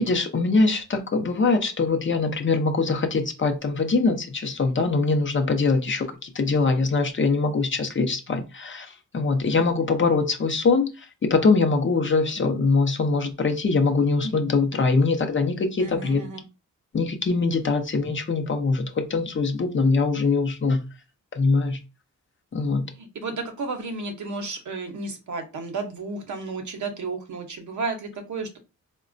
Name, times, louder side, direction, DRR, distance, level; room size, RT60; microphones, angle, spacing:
voice 1, 0.0-16.2 16.9-20.8 21.3-21.8 22.5-22.9, left 3 dB, 35° left, 0.6 m, -23 dB
voice 2, 15.8-16.4 22.9-28.6, right 3 dB, 65° right, 0.8 m, -32 dB
4.0 x 2.1 x 2.5 m
wide cardioid pair, 105°, 32 cm